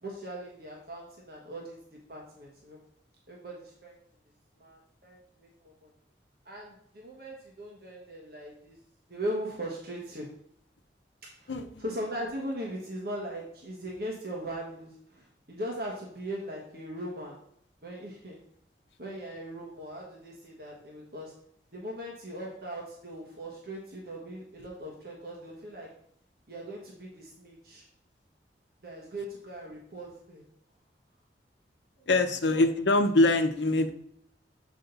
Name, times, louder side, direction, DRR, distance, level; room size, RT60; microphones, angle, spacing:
voice 1, 0.0-1.8 2.1-2.8 3.3-4.0 4.6-5.9 6.4-8.8 9.1-10.3 11.3-17.4 17.8-18.4 19.0-21.3 21.7-25.9 26.5-27.9 28.8-30.4 32.0-32.6, right 1 dB, 60° right, -2 dB, 1.3 m, -39 dB
voice 2, 11.5-11.8 32.1-33.9, left 2 dB, 85° left, 7 dB, 0.8 m, -24 dB
6.9 x 5.1 x 3.9 m, 0.69 s
head